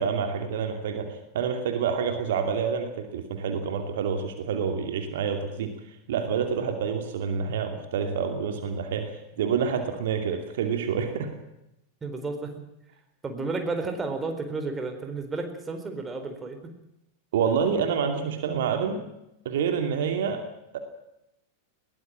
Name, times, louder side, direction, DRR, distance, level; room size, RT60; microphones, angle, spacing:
voice 1, 0.0-5.7 6.1-11.3 17.3-19.0 19.4-20.4 20.7-20.8, right 6 dB, 55° right, 6 dB, 2.6 m, -27 dB
voice 2, 12.0-12.6 13.2-16.7, right 3 dB, 15° right, 6 dB, 4.2 m, -32 dB
21.5 x 18.0 x 7.5 m, 0.86 s
figure-of-eight pair, 90°, 0 cm